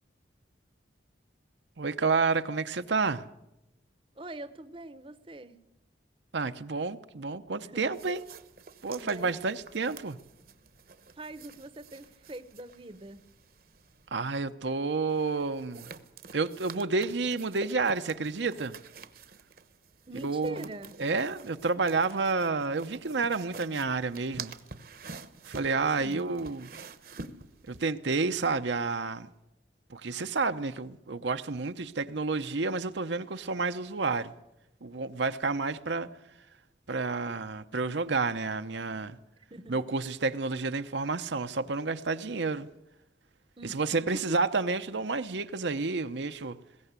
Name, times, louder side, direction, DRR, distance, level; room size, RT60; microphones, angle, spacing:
voice 1, 1.8-3.2 6.3-8.2 8.8-10.2 14.1-15.9 16.3-18.8 20.2-20.6 21.0-24.5 25.5-26.7 27.7-29.3 29.9-34.3 34.8-36.1 36.9-39.2 39.7-42.7 43.6-46.6, right 4 dB, 75° right, 0.8 m, -30 dB
voice 2, 4.1-5.6 7.6-8.0 9.0-9.4 11.1-13.2 20.1-21.0 26.0-26.3 39.5-39.8 43.6-43.8, right 1 dB, 30° right, 0.8 m, -43 dB
sound 1, 7.9-14.1 15.1-27.8, right 4 dB, 50° right, 1.0 m, -48 dB
20.5 x 17.0 x 8.2 m
head